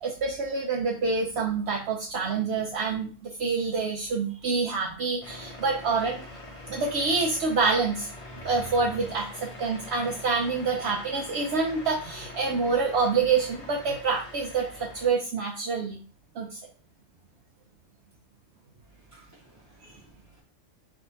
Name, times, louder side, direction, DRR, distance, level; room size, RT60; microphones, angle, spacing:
voice 1, 0.0-6.2 6.7-8.1 8.4-16.0 16.4-16.6, right 4 dB, 65° right, 0.9 m, -27 dB
sound 1, 5.2-15.1, left 2 dB, 30° left, 0.7 m, -43 dB
voice 2, 18.7-20.4, right 2 dB, 15° right, 0.7 m, -57 dB
3.6 x 3.3 x 4.0 m
omnidirectional pair, 1.3 m